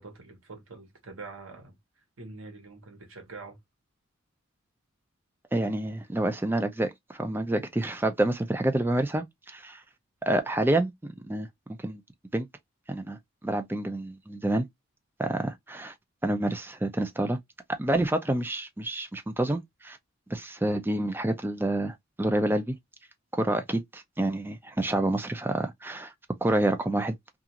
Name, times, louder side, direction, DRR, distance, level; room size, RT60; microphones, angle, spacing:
voice 1, 0.0-1.8 2.2-3.6, right 3 dB, 75° right, 1.1 m, -45 dB
voice 2, 5.5-9.8 10.3-10.9 11.3-11.5 11.8-12.0 12.3-12.5 12.9-13.2 13.4-14.7 15.2-15.9 16.2-17.4 17.8-20.0 20.3-22.8 23.3-26.1 26.4-27.2, right 1 dB, 10° right, 0.4 m, -28 dB
2.4 x 2.4 x 2.8 m
head